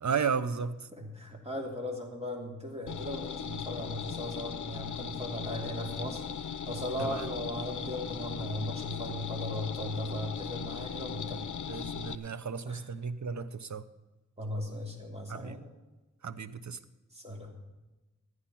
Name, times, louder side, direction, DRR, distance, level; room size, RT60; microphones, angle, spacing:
voice 1, 0.0-0.8 7.0-7.3 11.7-13.8 15.3-15.6 16.2-16.8, right 6 dB, 65° right, 12 dB, 0.8 m, -34 dB
voice 2, 1.0-6.2 6.6-11.5 12.7-12.8 14.4-15.6 17.1-17.5, left 1 dB, 20° right, -1 dB, 3.1 m, -37 dB
sound 1, 2.9-12.2, left 7 dB, 75° left, 0.6 m, -38 dB
14.0 x 9.6 x 5.8 m, 1.1 s
wide cardioid pair, 65°, 30 cm